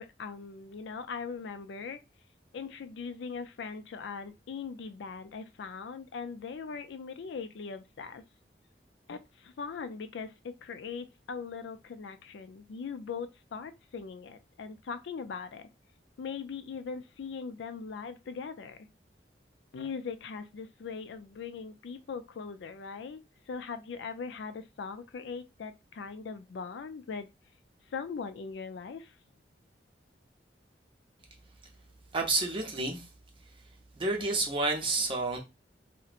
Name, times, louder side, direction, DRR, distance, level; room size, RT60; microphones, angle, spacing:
voice 1, 0.0-2.0 2.5-8.2 9.1-15.7 16.2-18.9 19.7-23.2 23.5-27.3 27.9-29.1, left 5 dB, 80° left, 0.4 m, -40 dB
voice 2, 32.1-33.1 34.0-35.4, right 2 dB, 30° right, 0.6 m, -29 dB
2.8 x 2.1 x 2.4 m
head